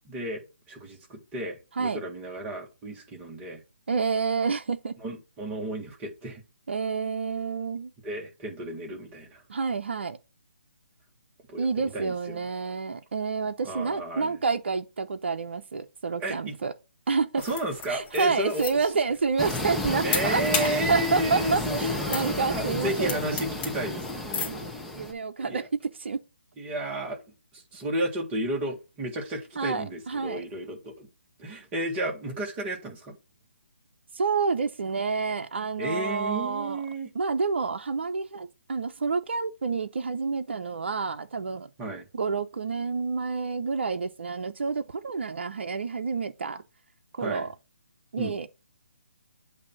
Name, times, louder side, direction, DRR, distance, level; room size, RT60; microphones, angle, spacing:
voice 1, 0.1-3.6 5.0-6.4 8.0-9.4 11.5-12.4 13.6-14.4 16.2-16.6 17.4-18.6 20.0-24.3 25.4-25.6 26.6-27.2 27.5-31.1 31.4-33.2 35.8-37.1 41.8-42.0 47.2-47.5 48.2-48.3, right 1 dB, 20° right, 1.7 m, -33 dB
voice 2, 3.9-4.9 6.7-7.9 9.5-10.2 11.6-16.7 17.1-17.4 17.9-23.2 24.4-25.7 26.0-26.2 29.6-30.4 34.2-36.8 37.1-41.7 42.1-46.6 47.1-47.5 48.1-48.5, right 4 dB, 65° right, 0.7 m, -29 dB
sound 1, 17.4-24.6, left 5 dB, 20° left, 1.6 m, -35 dB
sound 2, 19.4-25.1, left 1 dB, ahead, 0.9 m, -32 dB
8.3 x 2.8 x 5.9 m
figure-of-eight pair, 145°, 7 cm